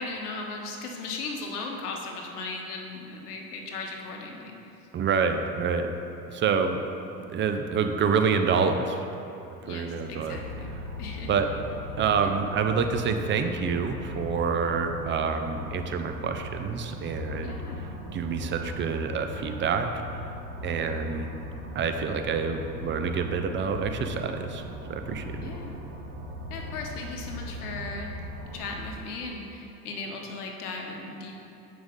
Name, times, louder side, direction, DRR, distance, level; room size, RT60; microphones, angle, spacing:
voice 1, 0.0-4.6 9.6-10.7 11.0-11.4 17.4-17.9 25.4-25.8 26.5-28.1 28.5-31.4, left 3 dB, 75° left, 1 dB, 1.1 m, -37 dB
voice 2, 4.9-5.9 6.3-6.8 7.3-9.0 9.4-10.4 11.3-11.5 12.0-17.6 18.1-19.9 20.6-21.3 21.7-24.6 24.9-25.2, right 5 dB, 25° right, 6 dB, 0.6 m, -27 dB
sound 1, 10.1-28.9, equal, 45° right, 1.2 m, -39 dB
7.3 x 6.0 x 3.7 m, 2.9 s
hypercardioid pair, 75°, 45 cm